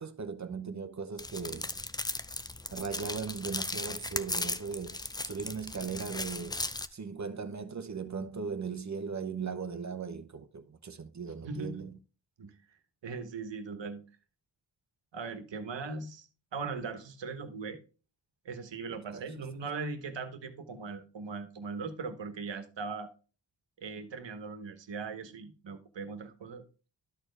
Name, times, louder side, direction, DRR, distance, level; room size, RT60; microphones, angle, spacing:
voice 1, 0.0-1.7 2.7-6.6 6.9-12.0 18.9-19.2, right 5 dB, 40° right, 0.8 m, -38 dB
sound 1, 1.2-6.9, left 2 dB, 10° left, 0.4 m, -37 dB
voice 2, 11.4-11.9 12.4-12.6 13.0-14.0 15.1-17.8 18.4-23.1 23.8-26.6, right 4 dB, 75° right, 1.3 m, -39 dB
12.5 x 4.3 x 3.3 m
wide cardioid pair, 90°, 44 cm